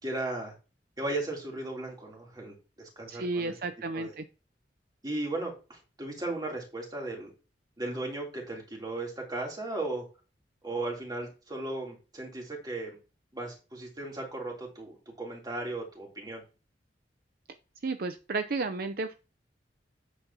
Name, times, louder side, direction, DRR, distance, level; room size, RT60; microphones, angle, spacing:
voice 1, 0.0-0.5 1.0-3.5 3.9-4.2 5.0-7.3 7.8-10.0 10.6-13.0 13.3-16.4, right 2 dB, 25° right, -1 dB, 3.1 m, -36 dB
voice 2, 3.1-4.2 17.8-19.2, right 3 dB, 55° right, 9 dB, 0.6 m, -32 dB
9.8 x 8.0 x 2.8 m, 0.32 s
head